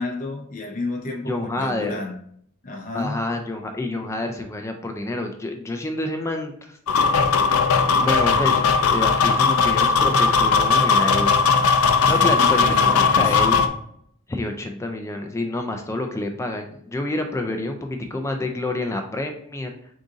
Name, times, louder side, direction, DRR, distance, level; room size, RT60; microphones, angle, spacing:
voice 1, 0.0-2.2 2.6-3.2 9.3-9.7 12.0-13.3, left 3 dB, 40° left, 0.7 m, -31 dB
voice 2, 1.2-1.9 2.9-6.8 8.0-11.4 11.9-13.6 14.3-19.7, left 2 dB, 15° left, 0.3 m, -28 dB
sound 1, 6.9-13.7, left 5 dB, 85° left, 0.4 m, -18 dB
3.7 x 2.6 x 3.8 m
head